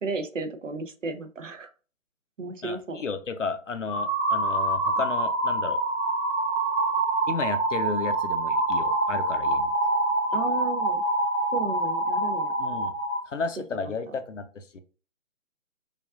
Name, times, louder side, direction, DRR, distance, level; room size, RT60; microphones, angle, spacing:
voice 1, 0.0-1.7 2.4-3.0 10.3-11.0 11.5-12.5 13.7-13.8, right 3 dB, 60° right, 7 dB, 0.7 m, -33 dB
voice 2, 2.6-5.8 7.3-9.7 12.6-12.9 13.3-14.8, left 4 dB, 60° left, 9 dB, 0.6 m, -33 dB
sound 1, 3.9-13.2, right 2 dB, 20° right, 1.0 m, -26 dB
5.0 x 2.4 x 2.4 m, 0.38 s
figure-of-eight pair, 170°, 42 cm